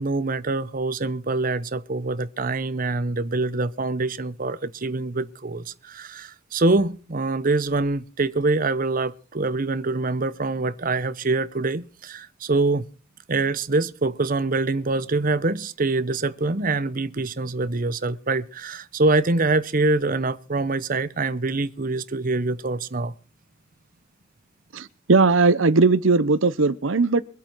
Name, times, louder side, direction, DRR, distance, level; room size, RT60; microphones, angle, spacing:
voice 1, 0.0-12.9 13.3-23.1, right 3 dB, 45° right, 0.9 m, -25 dB
voice 2, 24.7-27.2, right 3 dB, 80° right, 0.8 m, -18 dB
23.5 x 8.3 x 4.6 m
head